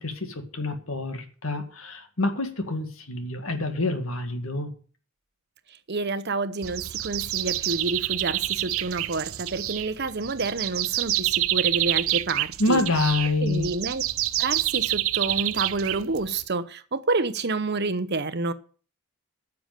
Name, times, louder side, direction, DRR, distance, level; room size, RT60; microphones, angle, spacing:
voice 1, 0.0-4.7 12.6-13.7, left 2 dB, 65° left, 2.0 m, -27 dB
voice 2, 5.9-12.8 13.4-14.0 14.4-18.5, right 3 dB, 50° right, 0.8 m, -28 dB
sound 1, 6.6-16.4, right 15 dB, 65° right, 0.5 m, -28 dB
10.0 x 7.0 x 8.9 m
head